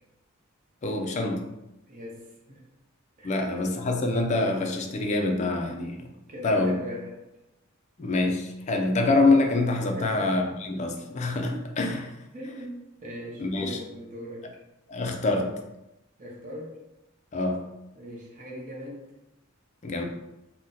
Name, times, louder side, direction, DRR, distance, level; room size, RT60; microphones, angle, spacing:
voice 1, 0.8-1.5 3.2-6.0 6.4-6.8 8.0-12.2 13.4-13.8 14.9-15.6 17.3-17.6 19.8-20.0, left 2 dB, 35° left, 3 dB, 0.3 m, -25 dB
voice 2, 1.9-2.7 3.2-3.5 5.6-5.9 6.3-7.3 10.0-10.3 11.5-11.6 12.3-14.5 16.2-16.8 17.9-19.1, equal, 40° right, -3 dB, 0.6 m, -40 dB
2.7 x 2.1 x 3.7 m, 0.94 s
head